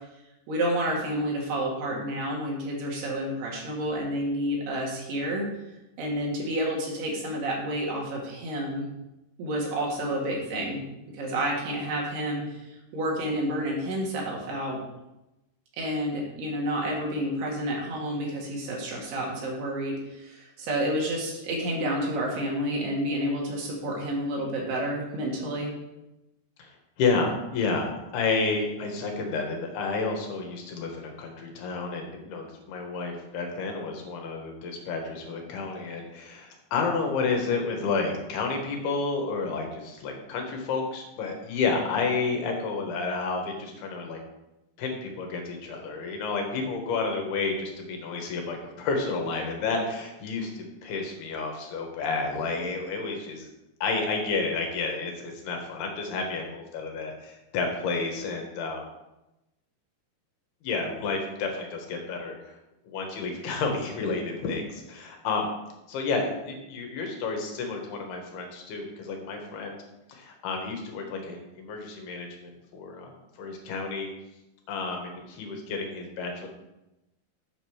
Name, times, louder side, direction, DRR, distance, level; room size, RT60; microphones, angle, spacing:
voice 1, 0.5-5.4 6.0-8.9 9.4-10.8 11.1-14.8 15.8-25.7, right 1 dB, 75° right, -2 dB, 3.9 m, -30 dB
voice 2, 26.6-44.2 44.8-53.5 53.8-58.8 60.6-62.6 62.9-65.5 65.9-69.8 70.1-74.1 74.7-76.5, left 4 dB, 75° left, 2 dB, 3.2 m, -30 dB
8.3 x 5.2 x 6.2 m, 0.95 s
omnidirectional pair, 4.7 m